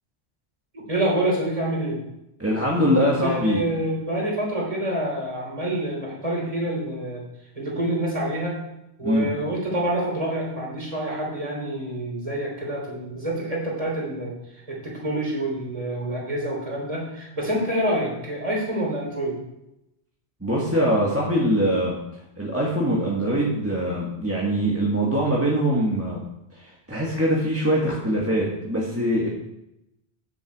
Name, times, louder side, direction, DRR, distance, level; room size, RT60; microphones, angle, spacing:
voice 1, 0.7-2.0 2.9-7.2 7.5-8.6 9.0-14.3 14.7-19.4, right 1 dB, 30° right, -3 dB, 3.3 m, -27 dB
voice 2, 2.4-3.6 9.0-9.3 20.4-22.0 22.4-26.2 26.5-29.3, equal, 10° right, -5 dB, 1.6 m, -23 dB
9.6 x 7.0 x 4.7 m, 0.86 s
omnidirectional pair, 1.1 m